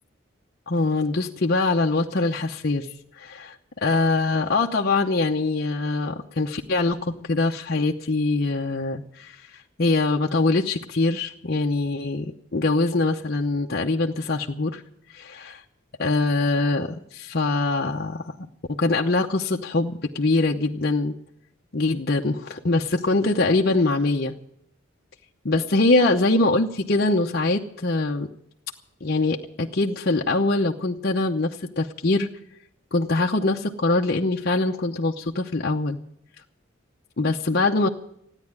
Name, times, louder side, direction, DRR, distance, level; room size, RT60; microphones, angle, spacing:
voice 1, 0.7-2.9 3.2-14.8 15.1-15.6 16.0-18.3 18.7-21.1 21.7-24.3 25.4-28.3 29.0-32.3 32.9-36.0 37.2-37.9, left 2 dB, 50° left, 0 dB, 0.8 m, -23 dB
15.5 x 9.8 x 9.5 m, 0.72 s
head